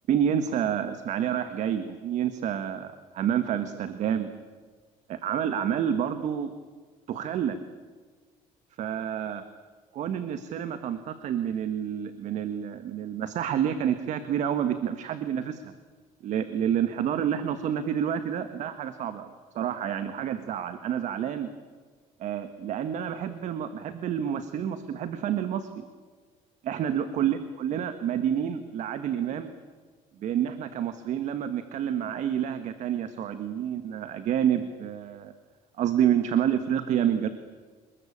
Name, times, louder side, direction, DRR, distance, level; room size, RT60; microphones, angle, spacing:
voice 1, 0.1-4.3 5.1-6.5 7.1-7.6 8.8-9.4 9.9-15.7 16.2-19.3 19.5-21.5 22.2-25.8 26.6-29.5 30.2-35.3 35.8-37.3, right 9 dB, 60° right, 10 dB, 1.6 m, -28 dB
27.5 x 21.0 x 8.7 m, 1.5 s
cardioid pair, 125°, 14 cm